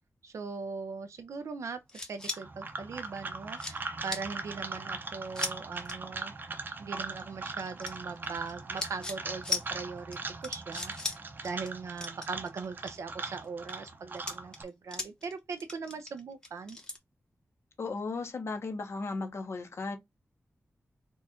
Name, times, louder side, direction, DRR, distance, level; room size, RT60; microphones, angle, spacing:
voice 1, 0.2-1.8 2.1-6.3 6.8-16.8, right 5 dB, 80° right, 0.6 m, -40 dB
sound 1, 1.9-2.4 3.1-3.2 3.5-3.8 4.1-4.2 5.3-5.5 5.8-5.9 7.8-8.5 8.8-9.2 9.4-9.6 10.1-10.2 10.4-11.2 11.4-11.7 12.0-13.0 13.4-13.8 14.2-15.3 15.6-17.0, left 3 dB, 15° left, 1.0 m, -36 dB
sound 2, 2.2-14.6, right 3 dB, 40° right, 0.7 m, -40 dB
voice 2, 17.8-20.0, left 3 dB, 60° left, 1.1 m, -35 dB
4.4 x 2.4 x 4.3 m
wide cardioid pair, 175°, 5 cm